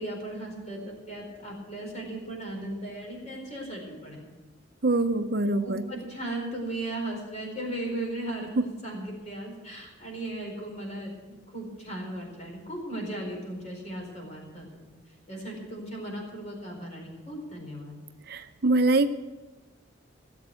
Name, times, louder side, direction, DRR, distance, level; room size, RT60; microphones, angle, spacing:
voice 1, 0.0-4.3 5.6-14.8 15.3-18.0, right 1 dB, 35° left, 0 dB, 4.5 m, -37 dB
voice 2, 4.8-5.8 8.6-8.7 18.3-19.1, right 2 dB, 50° right, 9 dB, 0.6 m, -24 dB
17.5 x 7.8 x 8.1 m, 1.2 s
head